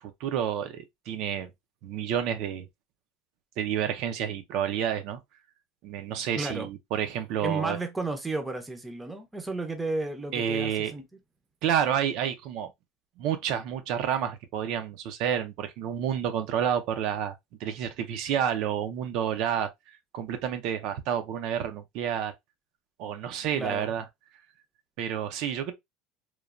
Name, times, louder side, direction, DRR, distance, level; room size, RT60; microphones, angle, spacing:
voice 1, 0.0-1.5 1.8-2.7 3.6-5.2 5.8-7.8 10.3-10.9 11.6-12.7 13.2-17.3 17.6-19.7 20.1-22.3 23.0-24.0 25.0-25.7, right 9 dB, 55° right, 0.4 m, -29 dB
voice 2, 6.4-6.7 7.4-11.0 23.5-23.9, right 3 dB, 10° right, 0.5 m, -33 dB
3.0 x 2.1 x 2.4 m
supercardioid pair, 140°, 0 cm